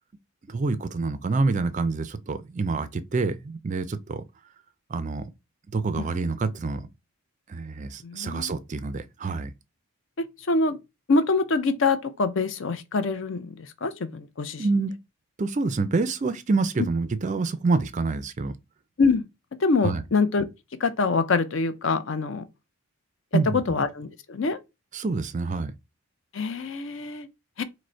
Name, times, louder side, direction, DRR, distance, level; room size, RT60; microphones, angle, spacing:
voice 1, 0.5-4.2 4.9-5.3 5.7-6.8 7.5-9.5 14.6-14.9 15.4-18.5 19.8-20.0 23.3-23.6 24.9-25.7, right 3 dB, 35° right, 0.3 m, -27 dB
voice 2, 8.0-8.5 10.5-10.8 11.1-13.5 13.8-14.6 19.0-19.2 19.6-20.4 20.8-22.4 23.5-24.6 26.3-27.3 27.6-27.7, left 4 dB, 55° left, 0.5 m, -25 dB
4.9 x 2.1 x 4.4 m
head